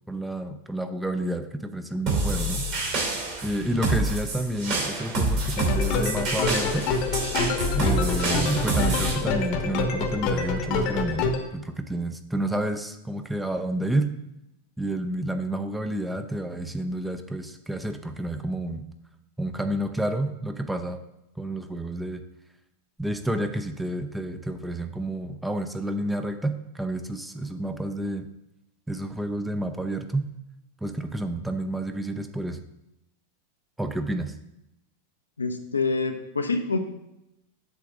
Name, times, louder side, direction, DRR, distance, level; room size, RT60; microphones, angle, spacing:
voice 1, 0.1-2.7 3.4-6.9 7.7-14.1 14.8-18.9 19.4-21.0 21.4-22.2 23.0-28.3 28.9-30.3 30.8-32.6 33.8-34.3, right 1 dB, 5° right, 7 dB, 0.5 m, -29 dB
sound 1, 2.1-9.1, right 2 dB, 45° right, 2.5 m, -27 dB
sound 2, 5.6-11.4, left 4 dB, 45° left, 1.0 m, -27 dB
voice 2, 35.4-36.9, left 3 dB, 75° left, 6 dB, 0.7 m, -26 dB
8.0 x 3.4 x 6.1 m, 0.87 s
figure-of-eight pair, 90°, 0 cm